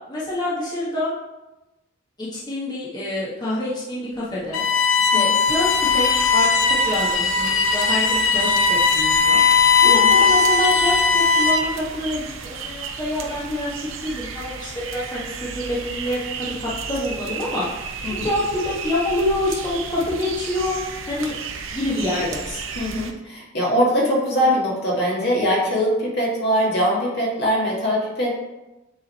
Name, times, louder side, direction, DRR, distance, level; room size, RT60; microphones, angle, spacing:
voice 1, 0.1-1.1 2.2-4.6 5.0-6.1 6.3-9.4 9.8-13.7 14.0-20.8 21.1-21.3 21.7-22.6, left 1 dB, 20° left, -9 dB, 1.5 m, -26 dB
Bowed string instrument, 4.5-11.8, left 5 dB, 75° left, 0.7 m, -18 dB
sound 1, 5.5-23.1, right 5 dB, 75° right, 0.7 m, -34 dB
voice 2, 22.8-28.3, equal, 55° left, -4 dB, 1.8 m, -22 dB
8.0 x 3.8 x 4.3 m, 1.0 s
head